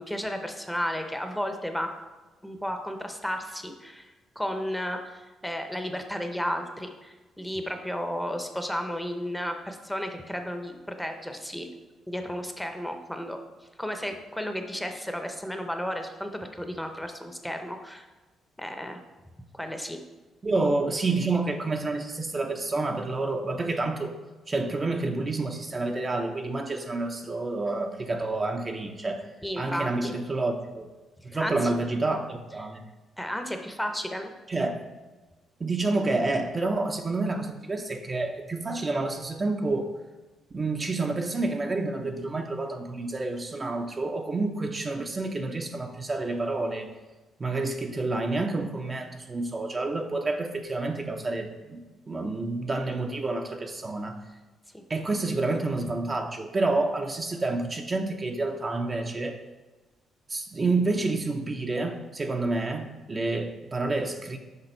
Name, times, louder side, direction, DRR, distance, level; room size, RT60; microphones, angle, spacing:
voice 1, 0.0-1.9 2.4-11.7 12.1-13.4 13.8-18.1 18.6-19.0 19.5-20.0 29.4-30.1 31.3-31.5 33.2-34.3 54.7-54.8, equal, 5° left, 5 dB, 0.7 m, -33 dB
voice 2, 20.4-24.1 24.5-30.9 31.2-32.8 34.5-34.8 35.6-39.9 40.5-46.9 47.4-54.2 54.9-59.4 60.3-64.4, right 2 dB, 30° right, 3 dB, 0.6 m, -29 dB
6.7 x 4.9 x 4.4 m, 1.2 s
cardioid pair, 90°, 0 cm